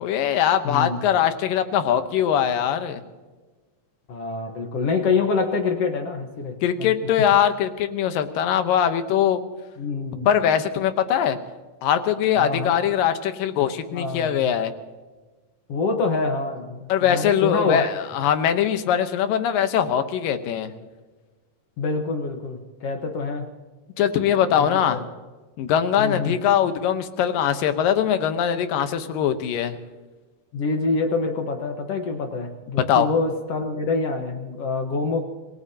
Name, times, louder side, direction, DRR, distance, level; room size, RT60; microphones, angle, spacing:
voice 1, 0.0-3.0 6.6-9.4 10.3-11.4 11.8-14.7 16.9-20.7 24.0-25.0 25.6-29.8 32.9-33.1, left 9 dB, 80° left, 9 dB, 2.7 m, -21 dB
voice 2, 0.6-1.0 4.1-6.9 9.8-10.3 12.4-12.8 13.9-14.5 15.7-17.9 21.8-23.5 24.6-25.0 26.0-26.4 30.5-35.3, left 4 dB, 55° left, 5 dB, 1.9 m, -26 dB
27.0 x 18.0 x 2.8 m, 1.3 s
omnidirectional pair, 3.9 m